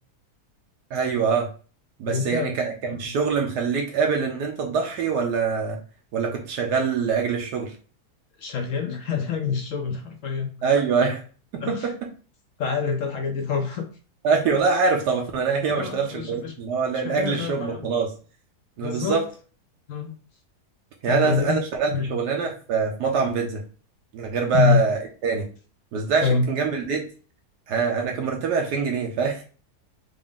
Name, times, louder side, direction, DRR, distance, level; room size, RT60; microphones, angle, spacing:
voice 1, 0.9-1.5 2.0-5.8 6.1-7.7 10.6-11.2 11.5-11.9 14.2-18.1 18.8-19.3 21.0-23.6 24.1-25.5 25.9-27.0 27.7-29.4, right 5 dB, 80° right, 1 dB, 1.3 m, -24 dB
voice 2, 2.1-2.5 2.9-3.1 8.4-10.7 11.6-11.9 12.6-13.9 15.7-16.5 17.0-17.9 18.8-19.2 19.9-20.1 21.0-21.6 21.9-22.2 24.5-24.8 26.2-26.5, left 6 dB, 60° left, 4 dB, 0.9 m, -26 dB
3.7 x 2.5 x 3.6 m, 0.38 s
omnidirectional pair, 1.7 m